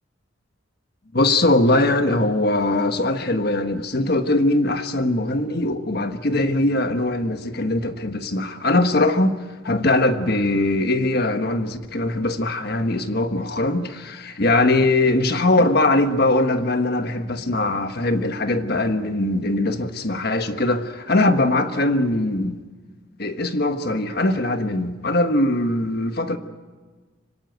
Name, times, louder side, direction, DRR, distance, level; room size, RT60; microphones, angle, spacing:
voice 1, 1.1-9.4 9.6-22.6 23.2-26.4, left 2 dB, 50° left, 1.3 m, -21 dB
26.0 x 17.5 x 9.3 m
head